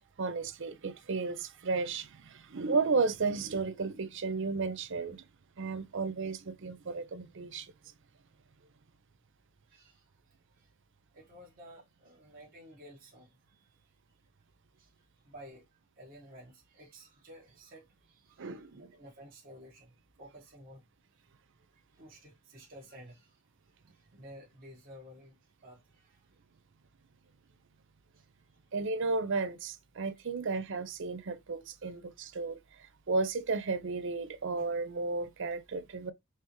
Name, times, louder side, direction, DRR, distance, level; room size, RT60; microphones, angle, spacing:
voice 1, 0.2-5.2 5.6-7.7 18.4-18.9 28.7-32.6 33.1-36.1, right 4 dB, 60° right, 0.6 m, -33 dB
voice 2, 9.7-10.0 10.5-10.7 11.1-13.7 14.8-14.9 15.2-15.7 16.0-20.8 21.7-23.4 23.8-26.2 28.1-28.3 30.1-30.3 31.8-31.9 32.3-32.4, equal, 45° right, 1.3 m, -53 dB
4.5 x 3.5 x 3.0 m
head